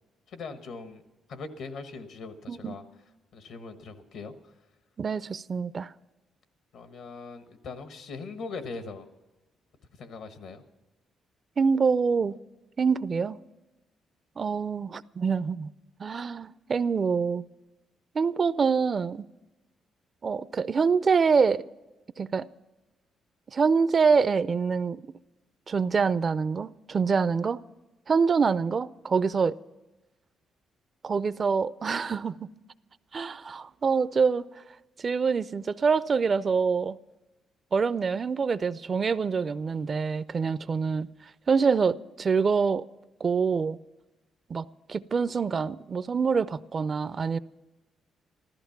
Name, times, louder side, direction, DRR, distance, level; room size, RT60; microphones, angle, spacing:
voice 1, 0.3-1.0 1.3-2.8 3.3-4.5 6.7-9.1 10.0-10.6, left 4 dB, 75° left, 1.3 m, -40 dB
voice 2, 5.0-5.9 11.6-12.4 12.8-13.4 14.4-15.7 16.0-17.4 18.1-19.3 20.2-21.6 22.2-22.5 23.5-25.0 25.7-27.6 28.1-29.6 31.0-32.5 33.1-34.5 35.0-37.0 37.7-41.1 41.5-42.8 43.2-43.8 44.5-47.4, right 5 dB, 40° right, 0.4 m, -25 dB
14.5 x 13.5 x 5.8 m
cardioid pair, 90°, 0 cm